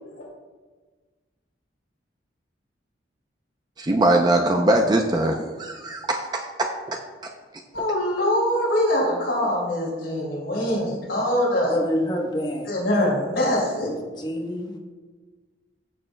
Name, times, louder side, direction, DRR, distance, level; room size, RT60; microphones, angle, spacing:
voice 1, 3.8-7.0, right 1 dB, 20° right, 2 dB, 0.5 m, -22 dB
voice 2, 7.7-11.8 12.7-13.9, left 1 dB, 85° left, -6 dB, 2.8 m, -23 dB
voice 3, 11.7-12.7 13.0-13.1 14.2-14.8, equal, 25° left, 1 dB, 1.0 m, -27 dB
14.5 x 6.7 x 2.2 m, 1.4 s
head